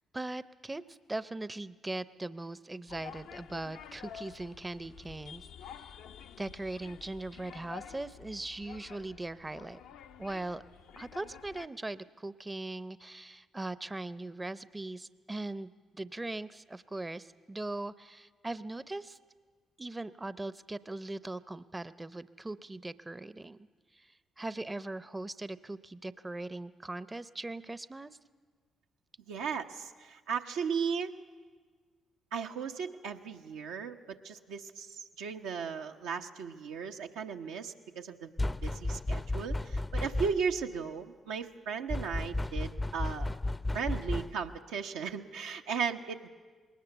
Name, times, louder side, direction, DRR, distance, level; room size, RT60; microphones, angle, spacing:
voice 1, 0.1-5.9 6.4-9.8 10.2-10.6 11.0-19.2 19.8-23.6 23.9-28.2, right 2 dB, 20° right, 16 dB, 0.7 m, -40 dB
sound 1, 2.9-11.7, left 8 dB, 75° left, 0.7 m, -50 dB
voice 2, 29.3-31.1 32.3-38.3 38.6-43.3 43.7-46.3, right 6 dB, 80° right, 3 dB, 1.0 m, -36 dB
sound 2, 38.4-40.6 41.9-44.6, left 2 dB, 20° left, 0.6 m, -33 dB
20.5 x 19.0 x 8.1 m, 1.5 s
hypercardioid pair, 45°, 0 cm